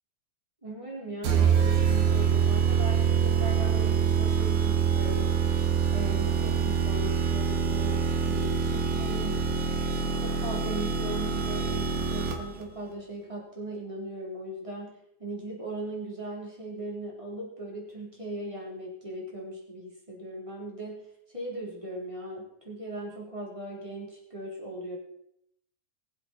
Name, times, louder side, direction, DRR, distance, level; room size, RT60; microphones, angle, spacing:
voice 1, 0.6-5.3 5.9-9.4 9.8-21.0 21.3-25.0, right 1 dB, 10° right, -3 dB, 3.7 m, -38 dB
sound 1, 1.2-12.6, right 6 dB, 80° right, 3.0 m, -25 dB
22.5 x 7.6 x 4.4 m, 0.73 s
omnidirectional pair, 3.5 m